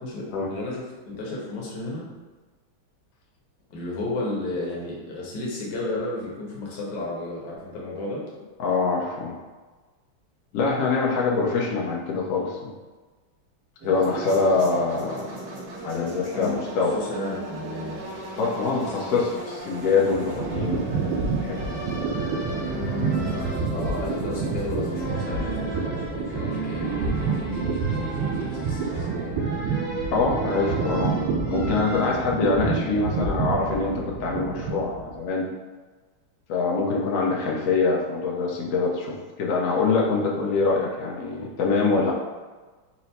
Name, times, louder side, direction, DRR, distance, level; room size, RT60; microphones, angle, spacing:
voice 1, 0.0-2.1 3.7-8.2 15.9-16.6 16.9-18.0 18.8-19.2 23.7-27.7 28.1-29.5 41.9-42.1, left 2 dB, 65° left, -4 dB, 1.4 m, -33 dB
voice 2, 8.6-9.4 10.5-12.6 13.8-15.3 15.8-16.9 18.4-19.3 19.7-21.7 23.3-23.5 30.1-31.2 31.4-35.5 36.5-42.1, left 4 dB, 85° left, -2 dB, 0.7 m, -24 dB
sound 1, 13.8-29.1, right 1 dB, 60° right, 1.3 m, -38 dB
sound 2, 19.7-35.2, right 4 dB, 85° right, 1.4 m, -28 dB
sound 3, 21.5-32.1, right 2 dB, 10° right, 0.5 m, -35 dB
4.4 x 2.0 x 4.1 m, 1.3 s
omnidirectional pair, 2.2 m